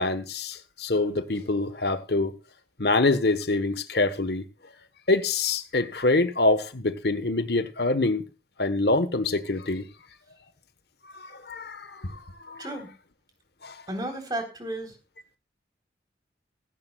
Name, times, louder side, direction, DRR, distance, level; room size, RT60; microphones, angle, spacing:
voice 1, 0.0-2.3 2.8-4.4 5.1-8.2 8.6-9.9 11.1-12.2 12.5-12.6 13.6-13.7, left 2 dB, 70° left, 1.3 m, -25 dB
voice 2, 12.6-12.9 13.9-15.0, right 1 dB, 25° right, 3.8 m, -33 dB
16.5 x 15.5 x 2.4 m
head